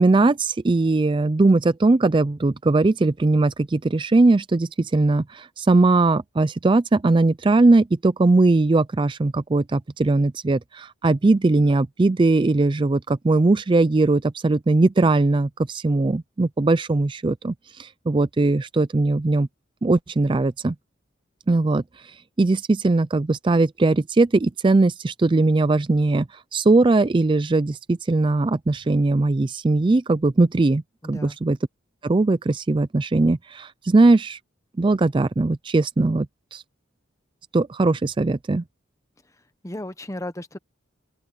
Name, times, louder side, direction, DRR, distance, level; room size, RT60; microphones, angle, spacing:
voice 1, 0.0-19.5 19.8-20.7 21.5-26.3 26.5-30.8 31.1-31.6 32.0-34.4 34.8-36.3 36.5-36.6 37.5-38.6, right 2 dB, 25° right, 0.4 m, -20 dB
voice 2, 31.0-31.4 39.6-40.6, left 1 dB, 15° left, 1.1 m, -34 dB
open air
head